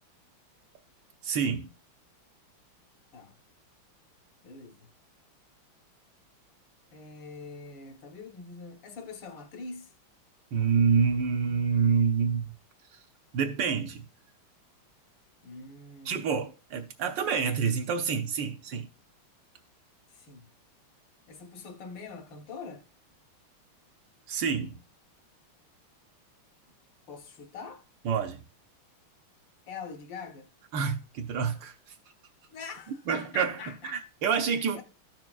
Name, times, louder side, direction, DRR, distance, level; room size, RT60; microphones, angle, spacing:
voice 1, 1.2-1.7 10.5-12.5 12.9-13.0 13.3-14.0 16.0-18.9 24.3-24.8 28.0-28.4 30.7-31.9 33.1-34.8, right 6 dB, 70° right, 1.3 m, -27 dB
voice 2, 4.4-4.9 6.9-9.9 15.4-16.2 20.1-20.5 21.3-22.8 27.1-27.8 29.7-30.5 32.5-34.0 34.8-34.9, left 4 dB, 65° left, 1.6 m, -43 dB
13.5 x 6.0 x 2.3 m
omnidirectional pair, 2.3 m